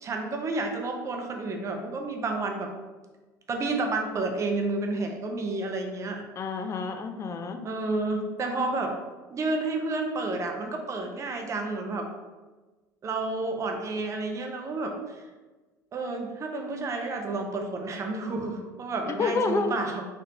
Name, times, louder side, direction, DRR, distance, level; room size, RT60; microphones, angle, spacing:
voice 1, 0.0-2.7 3.5-6.2 7.6-8.9 9.3-12.1 13.0-15.2 15.9-20.0, right 3 dB, 30° right, 3 dB, 0.6 m, -30 dB
voice 2, 6.4-7.7 19.1-19.8, left 4 dB, 30° left, 7 dB, 0.4 m, -29 dB
3.7 x 3.5 x 2.8 m, 1.2 s
figure-of-eight pair, 65°, 10 cm